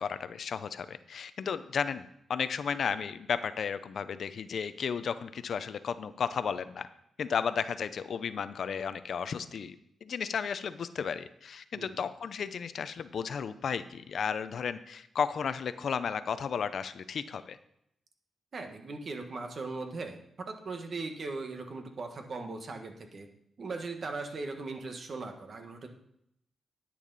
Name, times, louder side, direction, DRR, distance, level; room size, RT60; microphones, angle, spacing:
voice 1, 0.0-6.9 7.2-9.8 10.0-17.6, left 6 dB, 65° left, 13 dB, 0.6 m, -34 dB
voice 2, 18.5-23.3 23.6-25.9, right 3 dB, 50° right, 5 dB, 1.5 m, -39 dB
10.5 x 8.5 x 4.1 m, 0.75 s
cardioid pair, 95°, 0 cm